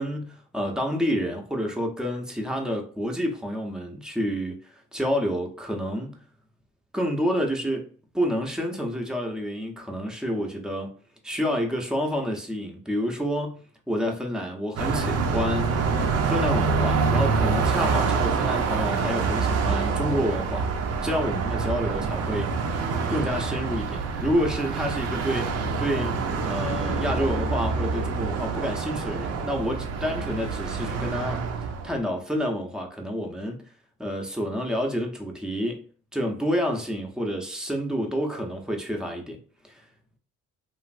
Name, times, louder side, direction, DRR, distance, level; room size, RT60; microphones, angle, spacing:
voice 1, 0.0-6.2 6.9-7.9 8.1-10.9 11.2-13.6 13.9-15.8 16.2-22.5 23.1-31.5 31.8-33.7 34.0-35.8 36.1-39.4 39.6-39.8, equal, ahead, 0.7 m, -29 dB
Car passing by, 14.8-32.0, right 4 dB, 55° right, 0.6 m, -26 dB
3.1 x 2.5 x 2.4 m
cardioid pair, 90°, 30 cm